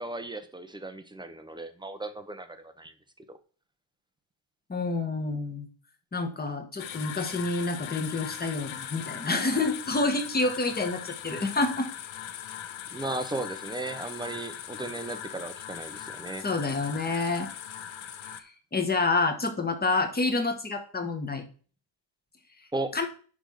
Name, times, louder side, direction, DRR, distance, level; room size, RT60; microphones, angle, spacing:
voice 1, 0.0-2.9 3.3-3.4 12.9-16.5 22.7-23.0, right 2 dB, 10° right, 9 dB, 0.7 m, -36 dB
voice 2, 4.7-5.7 6.1-11.9 16.4-17.5 18.7-21.4 22.9-23.1, left 3 dB, 20° left, 5 dB, 1.5 m, -28 dB
sound 1, 6.8-18.4, left 10 dB, 75° left, 1.0 m, -40 dB
10.5 x 3.6 x 6.4 m, 0.40 s
cardioid pair, 160°, 47 cm